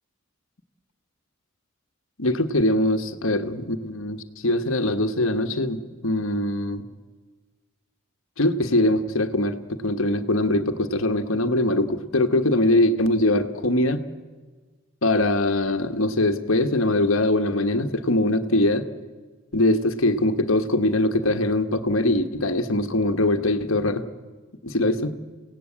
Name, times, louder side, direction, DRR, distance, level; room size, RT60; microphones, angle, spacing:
voice 1, 2.2-6.8 8.4-14.0 15.0-18.9 19.5-24.0 24.6-25.2, left 1 dB, 60° left, 8 dB, 1.3 m, -22 dB
30.0 x 17.0 x 8.7 m, 1.4 s
head